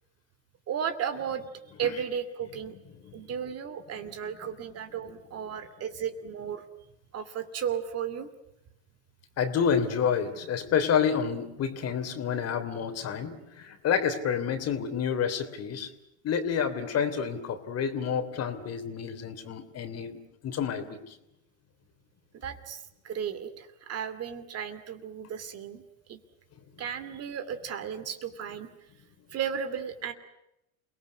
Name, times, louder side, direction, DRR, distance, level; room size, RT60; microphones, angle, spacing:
voice 1, 0.7-1.4 1.8-2.7 3.1-6.6 7.1-8.3 22.3-25.8 26.1-26.2 26.8-28.7 29.3-30.1, right 8 dB, 40° right, 10 dB, 2.7 m, -34 dB
voice 2, 9.4-15.9 16.2-20.2 20.4-21.2, left 7 dB, 40° left, 9 dB, 3.2 m, -29 dB
28.5 x 19.0 x 9.6 m, 0.87 s
hypercardioid pair, 95°, 40 cm